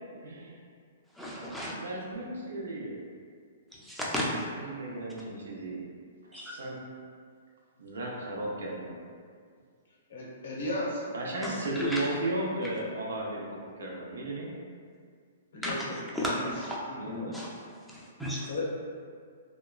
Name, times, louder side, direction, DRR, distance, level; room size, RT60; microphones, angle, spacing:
voice 1, 0.1-0.6 1.7-3.0 4.5-5.8 6.2-6.8 7.8-9.0 11.1-14.6 16.9-17.3, right 2 dB, 85° right, -2 dB, 0.5 m, -35 dB
voice 2, 1.2-1.7 3.8-4.5 6.3-6.5 11.4-12.0 15.6-15.9 16.1-16.8 17.3-17.5 17.9-18.5, equal, ahead, -6 dB, 0.4 m, -34 dB
voice 3, 10.1-11.1 11.7-12.0 15.5-16.6 16.8-17.3 18.5-18.6, left 2 dB, 70° left, -4 dB, 0.8 m, -35 dB
2.8 x 2.2 x 2.3 m, 2.1 s
hypercardioid pair, 140°, 0 cm